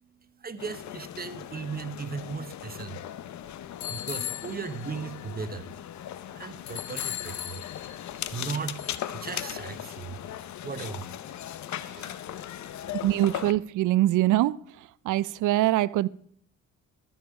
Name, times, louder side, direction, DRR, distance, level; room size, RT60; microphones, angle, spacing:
voice 1, 0.4-3.0 3.9-5.7 6.3-7.6 8.3-8.8 9.1-10.3 10.6-11.1, right 5 dB, 30° right, 1.1 m, -36 dB
sound 1, 0.6-13.5, left 11 dB, 65° left, 0.8 m, -37 dB
voice 2, 13.0-14.6 15.0-16.1, right 15 dB, 85° right, 0.5 m, -23 dB
13.5 x 7.3 x 4.9 m
cardioid pair, 90°, 30 cm